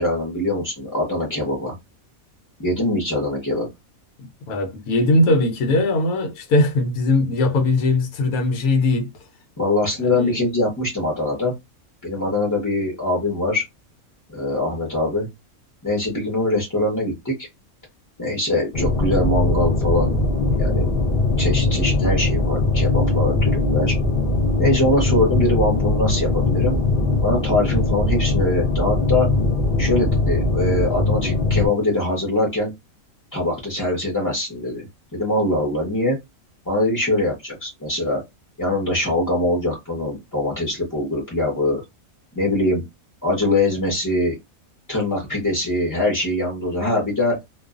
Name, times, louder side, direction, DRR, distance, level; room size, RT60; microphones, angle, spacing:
voice 1, 0.0-1.7 2.6-3.7 9.6-11.5 12.0-13.6 14.3-15.3 15.8-17.5 18.2-20.1 20.6-20.9 21.4-23.9 24.6-26.8 27.2-29.3 29.8-32.7 33.3-34.9 35.1-36.2 36.7-38.2 38.6-41.8 42.3-42.8 43.2-44.3 44.9-47.4, left 1 dB, 15° left, 0.7 m, -22 dB
voice 2, 4.5-9.1 10.0-10.4, left 2 dB, 85° left, 1.1 m, -20 dB
sound 1, 18.7-31.7, left 2 dB, 55° left, 0.7 m, -20 dB
2.5 x 2.3 x 2.4 m
omnidirectional pair, 1.5 m